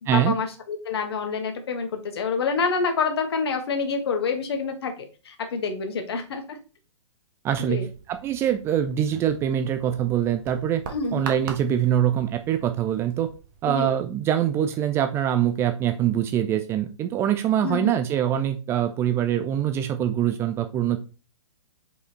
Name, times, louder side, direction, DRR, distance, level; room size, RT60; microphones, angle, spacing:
voice 1, 0.1-4.9 5.2-6.6 7.6-7.9 10.9-11.3 13.7-13.9 17.6-17.9, left 5 dB, 55° left, 6 dB, 1.6 m, -27 dB
voice 2, 7.4-10.8 11.1-13.3 13.6-21.0, right 10 dB, 15° right, 8 dB, 0.4 m, -24 dB
sound 1, 7.5-14.0, right 6 dB, 40° right, 1.4 m, -42 dB
4.9 x 4.9 x 4.4 m, 0.34 s
figure-of-eight pair, 115°, 16 cm